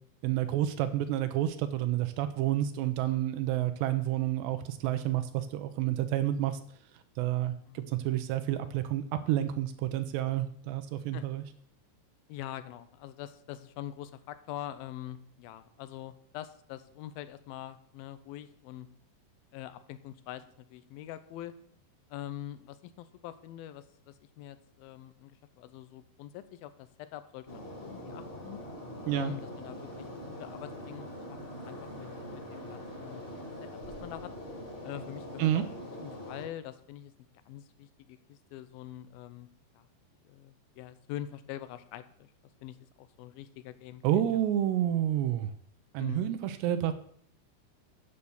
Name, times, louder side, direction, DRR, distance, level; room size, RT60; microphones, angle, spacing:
voice 1, 0.2-6.6 7.2-11.4 29.1-29.3 35.4-35.6 44.0-45.5 45.9-46.9, right 12 dB, 85° right, 9 dB, 2.9 m, -29 dB
voice 2, 3.0-3.3 7.7-8.0 11.1-11.3 12.3-18.9 19.5-20.4 20.7-21.5 22.1-28.6 29.1-31.4 31.7-34.3 34.8-37.1 37.5-39.5 39.7-39.9 40.2-42.3 42.6-44.4 46.0-46.4, left 12 dB, 80° left, 12 dB, 2.2 m, -44 dB
sound 1, 27.5-36.5, equal, 15° left, 2.2 m, -43 dB
8.5 x 7.9 x 7.0 m, 0.63 s
omnidirectional pair, 4.8 m